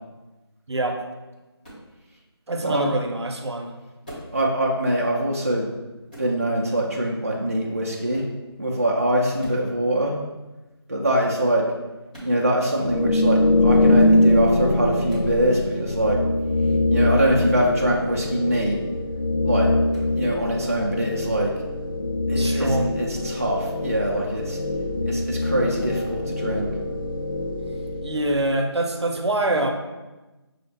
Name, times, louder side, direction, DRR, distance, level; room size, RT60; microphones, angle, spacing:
voice 1, 0.7-1.0 2.5-3.7 17.4-17.5 22.4-22.9 28.0-29.7, right 2 dB, 75° right, 4 dB, 0.6 m, -25 dB
sound 1, 1.6-1.9 4.0-4.4 6.1-6.4 8.1-8.4 9.4-9.7 12.1-12.4 15.1-15.3 18.1-18.4 19.9-20.1, right 1 dB, 20° left, 0.8 m, -40 dB
voice 2, 2.6-2.9 4.3-5.7 6.2-8.2 8.6-10.2 10.9-11.7 12.2-16.2 16.9-18.8 19.4-19.7 20.2-21.5 22.3-24.6 25.1-26.7, right 1 dB, 35° right, -2 dB, 0.4 m, -23 dB
sound 2, 12.8-28.6, left 2 dB, 50° left, 0.4 m, -23 dB
6.1 x 2.0 x 3.2 m, 1.1 s
figure-of-eight pair, 175°, 14 cm